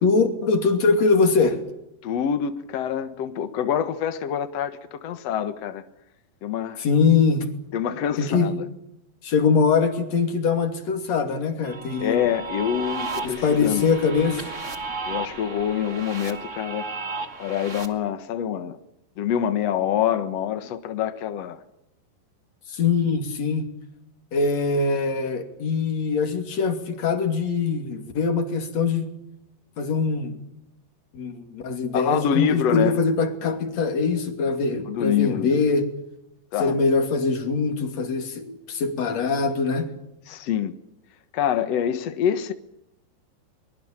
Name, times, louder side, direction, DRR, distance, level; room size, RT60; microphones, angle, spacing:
voice 1, 0.0-1.6 6.8-7.5 8.2-8.5 9.2-12.2 13.2-14.5 22.7-23.7 24.3-29.1 29.8-30.4 31.1-35.8 36.6-39.9, left 4 dB, 40° left, 3.4 m, -22 dB
voice 2, 2.0-5.8 6.4-6.8 7.7-8.7 12.0-13.8 15.0-16.9 17.4-18.8 19.2-21.6 31.9-33.0 34.9-35.6 36.5-36.8 40.3-40.7 41.3-42.5, left 9 dB, 85° left, 1.4 m, -26 dB
sound 1, 11.6-17.9, right 4 dB, 65° right, 0.7 m, -34 dB
23.5 x 22.5 x 8.9 m
omnidirectional pair, 5.2 m